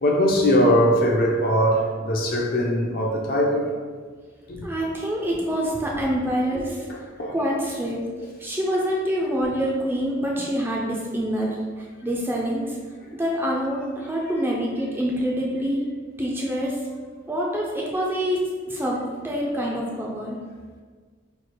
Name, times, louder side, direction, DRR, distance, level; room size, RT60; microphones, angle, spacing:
voice 1, 0.0-3.7 4.5-4.7 6.9-7.3, equal, 45° left, -1 dB, 0.5 m, -21 dB
voice 2, 4.6-7.0 7.3-8.0 8.4-11.5 11.8-12.8 13.1-15.8 16.2-16.8 17.3-19.0 19.2-20.4, equal, 10° right, -3 dB, 0.4 m, -26 dB
3.1 x 2.4 x 4.3 m, 1.5 s
head